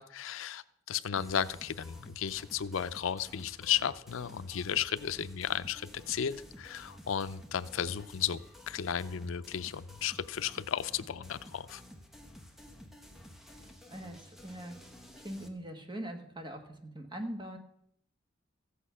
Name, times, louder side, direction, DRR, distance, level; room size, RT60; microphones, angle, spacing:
voice 1, 0.0-8.4 8.7-11.8, left 9 dB, 90° left, 15 dB, 0.5 m, -34 dB
sound 1, 1.2-15.5, equal, ahead, 1.0 m, -52 dB
voice 2, 13.9-14.8 15.2-17.6, right 1 dB, 25° right, 5 dB, 1.3 m, -42 dB
14.5 x 8.3 x 5.6 m, 0.73 s
head